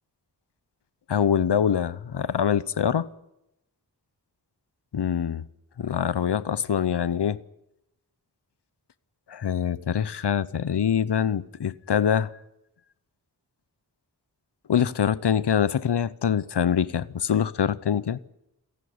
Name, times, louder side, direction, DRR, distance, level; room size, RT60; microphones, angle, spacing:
voice 1, 1.1-3.1 4.9-5.4 5.8-7.4 9.3-12.3 14.7-18.2, left 8 dB, 90° left, 0.8 m, -24 dB
28.5 x 11.5 x 9.5 m
wide cardioid pair, 70°, 40 cm